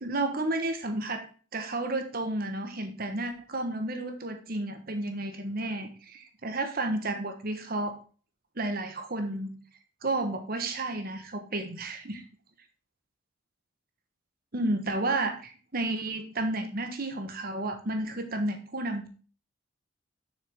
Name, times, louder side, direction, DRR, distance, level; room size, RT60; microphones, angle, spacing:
voice 1, 0.0-8.0 8.6-9.5 10.0-12.2 14.5-19.1, right 2 dB, 45° right, 7 dB, 1.2 m, -32 dB
7.1 x 6.5 x 3.5 m, 0.38 s
head